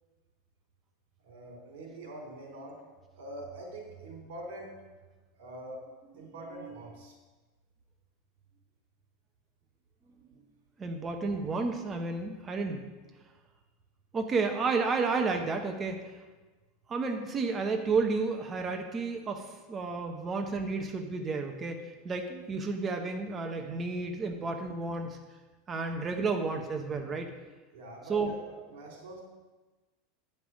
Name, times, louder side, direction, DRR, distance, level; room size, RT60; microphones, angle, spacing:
voice 1, 1.2-2.8 3.1-4.8 5.4-5.8 6.1-7.1 27.7-29.2, right 1 dB, 75° right, 0 dB, 3.4 m, -44 dB
voice 2, 10.8-12.8 14.1-16.2 16.9-25.2 25.7-27.3 28.1-28.3, right 4 dB, 20° right, 4 dB, 0.8 m, -31 dB
10.0 x 5.4 x 6.2 m, 1.2 s
supercardioid pair, 155°, 0 cm